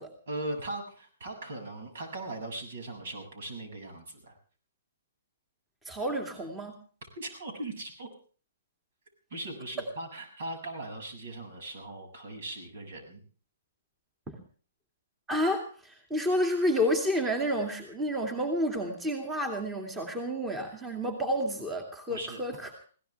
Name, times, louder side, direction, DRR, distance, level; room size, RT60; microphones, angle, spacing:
voice 1, 0.3-4.4 7.2-8.1 9.3-13.2 22.1-22.4, right 2 dB, 65° right, 5 dB, 7.2 m, -39 dB
voice 2, 5.8-6.8 14.3-14.4 15.3-22.7, equal, 10° right, 4 dB, 2.5 m, -30 dB
21.5 x 17.0 x 3.5 m, 0.41 s
hypercardioid pair, 140°, 0 cm